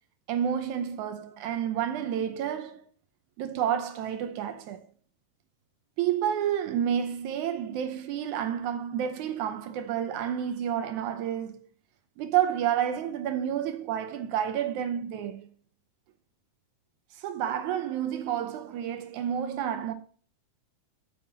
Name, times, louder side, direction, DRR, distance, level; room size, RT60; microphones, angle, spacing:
voice 1, 0.3-2.9 3.4-4.9 6.0-11.7 12.2-15.5 17.2-19.9, right 9 dB, 75° right, 2.1 m, -30 dB
7.5 x 5.8 x 5.8 m
omnidirectional pair, 3.7 m